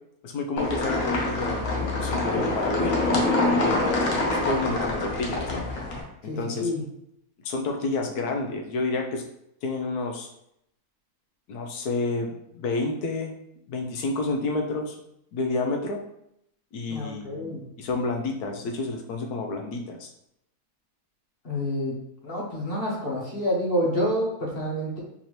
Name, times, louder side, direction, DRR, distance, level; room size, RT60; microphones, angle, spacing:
voice 1, 0.2-3.8 4.5-5.6 6.2-6.7 7.4-9.2 9.6-10.3 11.5-13.3 13.7-15.0 15.3-16.0 16.7-20.1, left 3 dB, 90° left, 2 dB, 1.2 m, -30 dB
sound 1, 0.6-6.0, left 2 dB, 65° left, 1.2 m, -25 dB
voice 2, 6.3-6.8 16.9-17.6 21.4-22.0 22.2-25.0, equal, 45° left, -3 dB, 1.1 m, -28 dB
4.1 x 2.7 x 3.0 m, 0.76 s
omnidirectional pair, 1.6 m